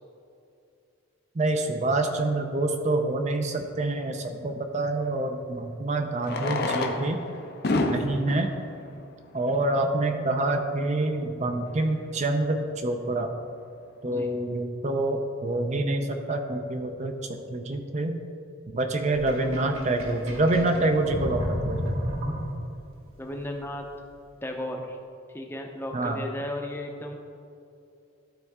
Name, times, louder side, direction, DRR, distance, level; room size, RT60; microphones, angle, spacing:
voice 1, 1.3-7.2 7.9-8.5 9.3-13.3 14.0-17.1 17.5-18.2 18.7-21.9 25.9-26.2, right 2 dB, 35° right, 5 dB, 0.5 m, -26 dB
Fireworks, 2.6-2.7 5.0-5.1 6.1-9.9 10.7-10.8 11.0-11.1 11.3-11.4 11.9-12.1, left 2 dB, 50° left, 0.6 m, -30 dB
Sink (filling or washing), 19.1-22.9, equal, 70° right, 1.6 m, -32 dB
voice 2, 23.2-23.9 24.4-25.0 25.3-27.2, left 1 dB, 10° left, 2 dB, 0.6 m, -35 dB
12.5 x 4.4 x 3.6 m, 2.6 s
head